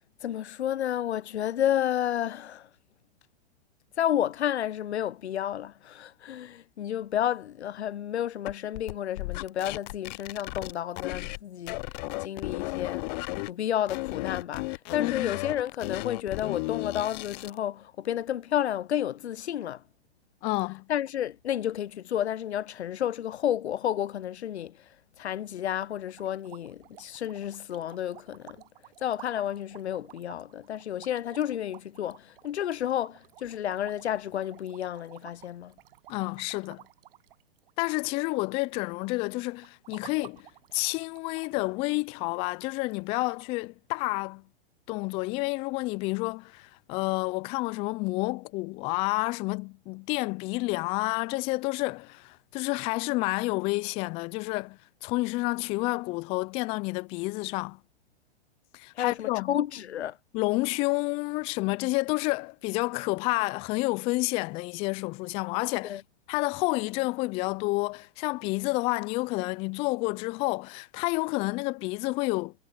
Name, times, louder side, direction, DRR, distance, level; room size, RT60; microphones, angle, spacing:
voice 1, 0.2-2.7 4.0-11.8 12.2-13.1 13.5-19.8 20.9-24.8 25.2-28.6 29.0-35.7 59.0-60.2 65.8-66.0, left 11 dB, 85° left, 0.6 m, -31 dB
sound 1, 8.5-11.4 11.7-13.5 13.9-17.6, left 24 dB, 40° left, 0.7 m, -34 dB
voice 2, 15.0-15.3 20.4-20.9 36.1-36.8 37.8-40.5 40.7-44.4 44.9-57.8 58.7-59.6 60.3-66.0 66.3-72.5, left 24 dB, 20° left, 0.3 m, -29 dB
sound 2, 25.6-38.4 38.7-39.1 39.6-41.5 41.8-41.9 42.3-42.4 42.9-43.0 43.3-43.4, right 15 dB, 60° right, 5.7 m, -52 dB
hypercardioid pair, 120°, 32 cm